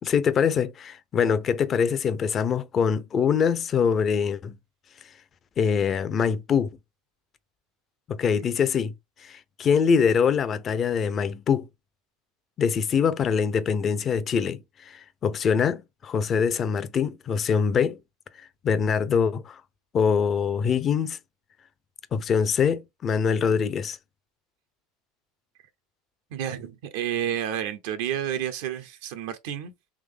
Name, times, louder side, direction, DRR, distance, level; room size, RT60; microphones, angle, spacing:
voice 1, 0.0-4.6 5.6-6.7 8.1-8.9 9.2-11.7 12.6-18.0 18.4-19.6 19.9-21.2 22.1-24.0, left 6 dB, 35° left, 0.6 m, -24 dB
voice 2, 26.3-29.7, right 10 dB, 75° right, 0.7 m, -30 dB
3.7 x 3.1 x 3.5 m
supercardioid pair, 110°, 0 cm